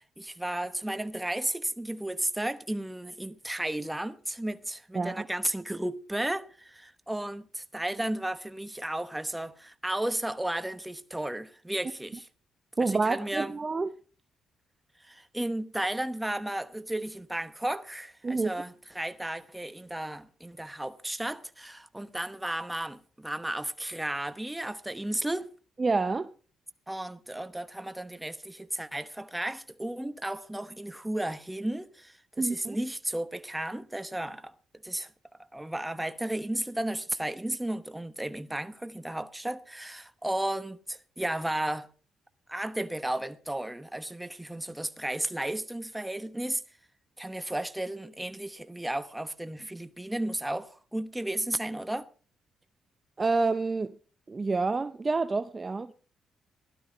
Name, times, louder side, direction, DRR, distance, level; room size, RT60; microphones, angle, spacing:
voice 1, 0.0-12.3 12.8-13.5 15.0-25.5 26.9-34.5 34.8-35.1 35.5-41.9 42.5-46.6 47.2-52.1, right 1 dB, 10° right, 1.0 m, -34 dB
voice 2, 12.8-13.9 18.2-18.5 25.8-26.3 32.4-32.8 53.2-53.9 54.3-55.9, right 3 dB, 30° right, 0.6 m, -28 dB
15.5 x 12.0 x 3.9 m
cardioid pair, 90°, 0 cm